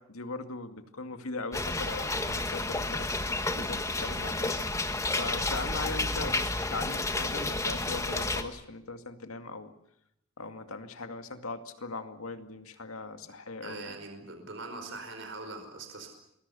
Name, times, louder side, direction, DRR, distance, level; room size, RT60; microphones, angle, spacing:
voice 1, 0.0-3.1 3.5-4.7 5.1-9.7 10.4-14.0, left 3 dB, 90° left, 8 dB, 2.2 m, -39 dB
sound 1, 1.5-8.4, left 2 dB, 15° left, 1.5 m, -31 dB
voice 2, 13.6-16.1, right 3 dB, 60° right, 5 dB, 5.0 m, -42 dB
27.5 x 21.5 x 7.0 m, 0.79 s
head